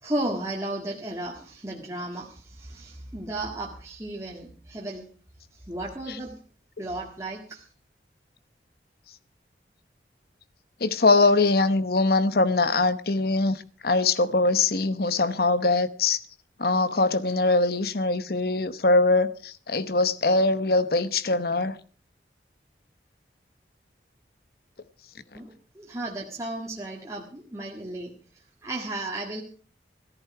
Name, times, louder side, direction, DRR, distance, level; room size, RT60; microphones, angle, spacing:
voice 1, 0.0-5.1 5.5-6.4 6.8-7.6 25.4-28.1 28.6-29.4, right 1 dB, 15° right, 1.7 m, -34 dB
voice 2, 10.8-16.2 16.6-21.8, left 3 dB, 55° left, 0.9 m, -22 dB
14.5 x 14.0 x 4.8 m
head